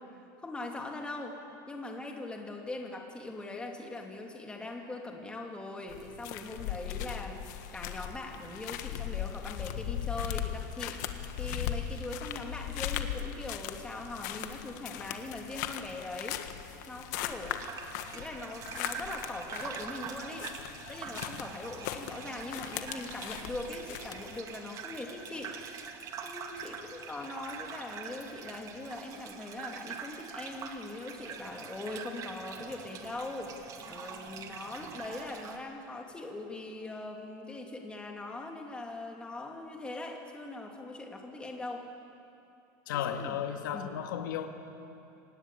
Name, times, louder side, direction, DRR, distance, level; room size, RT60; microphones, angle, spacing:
voice 1, 0.1-1.4 1.7-7.4 7.7-11.0 11.4-16.4 16.9-17.7 18.1-20.5 20.9-25.5 26.2-41.8 42.9-43.4 43.7-44.1, left 2 dB, 10° left, 1 dB, 2.8 m, -41 dB
sound 1, 5.9-24.4, left 10 dB, 65° left, 1.6 m, -38 dB
sound 2, 17.4-35.6, right 6 dB, 35° right, 2.1 m, -44 dB
voice 2, 42.9-44.5, left 9 dB, 85° left, 6 dB, 1.9 m, -34 dB
26.5 x 18.5 x 8.6 m, 2.8 s
supercardioid pair, 145°, 10 cm